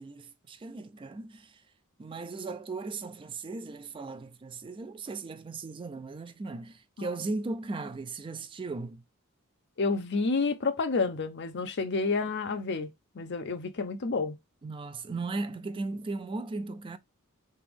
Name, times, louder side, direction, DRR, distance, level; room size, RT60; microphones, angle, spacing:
voice 1, 0.0-1.5 2.0-9.0 14.6-17.0, right 3 dB, 25° right, 0.3 m, -37 dB
voice 2, 9.8-12.9 13.1-14.4, left 4 dB, 55° left, 0.6 m, -29 dB
3.3 x 3.0 x 3.4 m
head